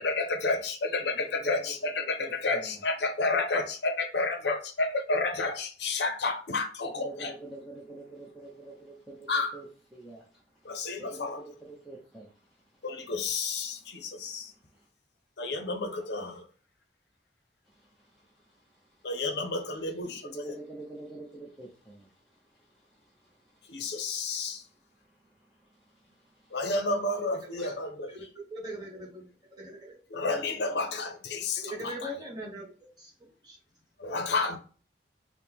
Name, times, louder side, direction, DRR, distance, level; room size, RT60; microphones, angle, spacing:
voice 1, 0.0-7.3 9.3-9.6 10.6-11.4 12.8-14.5 15.4-16.5 19.0-20.3 23.7-24.6 26.5-28.1 30.1-32.1 34.0-34.6, left 3 dB, 70° left, 0.6 m, -31 dB
voice 2, 0.8-2.8 6.8-13.1 13.6-14.9 15.9-16.4 17.6-19.6 20.0-26.7 27.6-27.8 31.4-31.7, right 2 dB, ahead, 0.7 m, -49 dB
voice 3, 28.1-30.0 31.5-33.6, right 1 dB, 25° right, 1.4 m, -41 dB
4.4 x 2.1 x 3.5 m
head